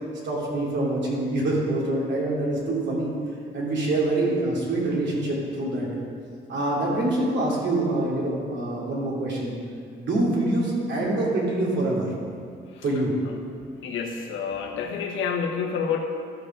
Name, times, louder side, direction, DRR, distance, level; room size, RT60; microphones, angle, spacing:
voice 1, 0.2-3.1 3.5-5.9 6.5-9.5 10.0-12.1 12.8-13.1, right 2 dB, 65° right, -4 dB, 3.1 m, -25 dB
voice 2, 13.8-16.0, left 6 dB, 80° left, 3 dB, 1.2 m, -28 dB
13.0 x 5.5 x 6.1 m, 2.3 s
cardioid pair, 90°, 20 cm